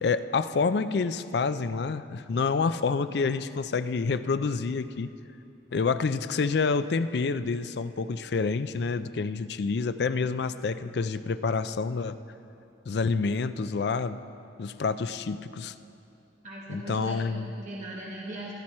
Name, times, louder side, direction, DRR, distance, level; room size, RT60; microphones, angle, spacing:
voice 1, 0.0-5.1 5.7-12.2 12.9-14.2 14.6-15.7 16.7-17.5, left 4 dB, 60° left, 13 dB, 0.4 m, -28 dB
voice 2, 16.4-18.6, right 1 dB, 40° right, -4 dB, 1.2 m, -39 dB
15.0 x 12.0 x 4.3 m, 2.7 s
head